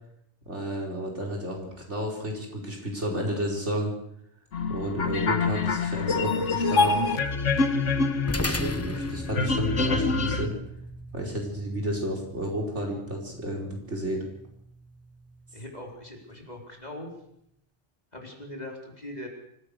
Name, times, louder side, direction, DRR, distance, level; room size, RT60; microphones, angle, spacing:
voice 1, 0.5-3.9 4.7-7.1 8.4-10.5 11.1-14.2, equal, 70° right, 0 dB, 5.2 m, -31 dB
sound 1, 4.5-10.5, left 4 dB, 80° left, 1.7 m, -26 dB
sound 2, 8.3-16.9, left 1 dB, 15° left, 0.8 m, -38 dB
voice 2, 15.5-17.1 18.1-19.3, left 1 dB, 35° left, 0 dB, 4.5 m, -41 dB
25.0 x 16.0 x 6.7 m, 0.73 s
omnidirectional pair, 1.2 m